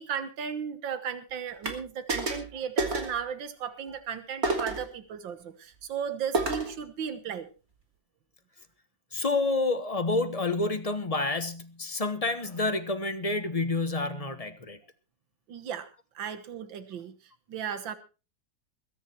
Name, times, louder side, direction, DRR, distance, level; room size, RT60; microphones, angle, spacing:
voice 1, 0.0-7.5 15.5-15.9 16.2-17.1 17.5-18.0, right 8 dB, 85° right, 2.0 m, -35 dB
sound 1, 1.6-1.8 2.1-2.5 2.8-3.2 4.4-4.9 6.3-6.8, right 2 dB, 50° right, 3.3 m, -29 dB
voice 2, 9.1-14.8, left 3 dB, 20° left, 1.3 m, -29 dB
21.5 x 10.0 x 4.5 m
omnidirectional pair, 2.0 m